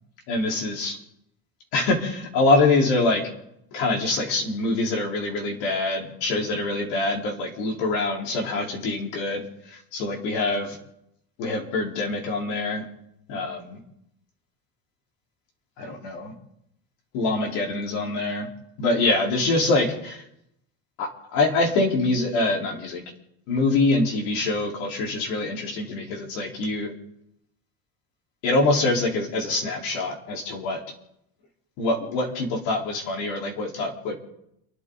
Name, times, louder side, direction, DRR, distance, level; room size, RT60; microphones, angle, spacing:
voice 1, 0.3-1.0 1.7-3.2 3.7-9.4 9.9-10.8 11.4-12.8 13.3-13.8 15.8-16.3 17.1-18.5 18.8-20.2 21.0-23.0 23.5-26.9 28.4-30.8 31.8-34.1, left 2 dB, 65° left, 0 dB, 4.2 m, -24 dB
30.0 x 12.0 x 4.0 m, 0.79 s
cardioid pair, 165°, 38 cm